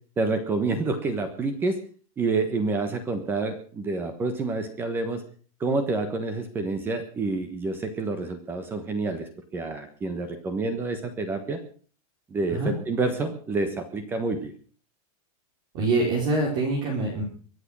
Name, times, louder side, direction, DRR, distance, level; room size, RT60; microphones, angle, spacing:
voice 1, 0.2-1.8 2.2-5.2 5.6-11.6 12.3-14.5, right 3 dB, 10° right, 9 dB, 1.3 m, -28 dB
voice 2, 15.7-17.2, right 2 dB, 35° right, -2 dB, 4.2 m, -25 dB
23.5 x 8.0 x 6.2 m, 0.43 s
supercardioid pair, 175°, 19 cm